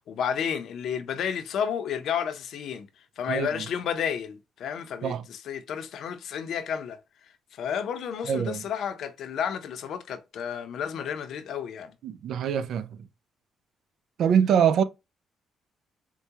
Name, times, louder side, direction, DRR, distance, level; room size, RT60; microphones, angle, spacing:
voice 1, 0.0-2.9 3.2-7.0 7.5-11.9, left 8 dB, 75° left, 0.6 m, -31 dB
voice 2, 8.3-8.6 12.0-12.9 14.2-14.8, right 8 dB, 70° right, 0.4 m, -23 dB
4.6 x 2.2 x 2.8 m
cardioid pair, 90°, 0 cm